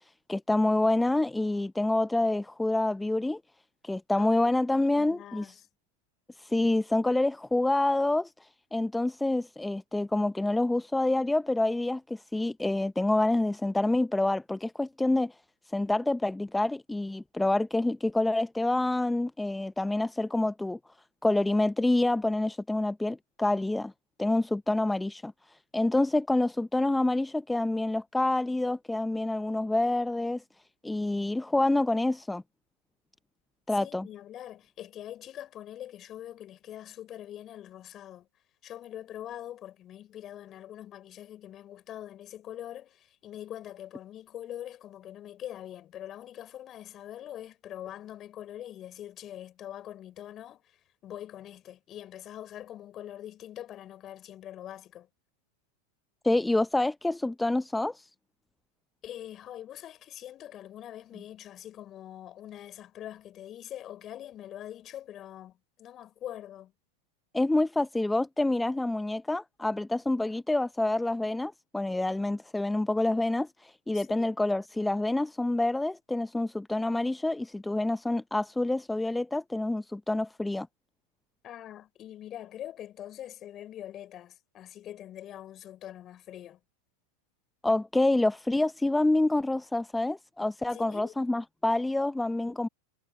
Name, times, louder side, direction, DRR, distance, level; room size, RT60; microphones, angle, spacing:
voice 1, 0.3-3.4 3.8-5.5 6.4-15.3 15.7-20.8 21.2-23.9 24.2-25.3 25.7-30.4 30.8-32.4 33.7-34.1 56.2-58.1 67.3-80.7 87.6-92.7, left 2 dB, 5° left, 0.6 m, -27 dB
voice 2, 4.2-5.6 33.7-38.3 38.6-55.1 59.0-66.7 73.9-74.3 81.4-86.6 90.7-91.1, left 11 dB, 35° left, 5.3 m, -44 dB
hypercardioid pair, 100°, 0 cm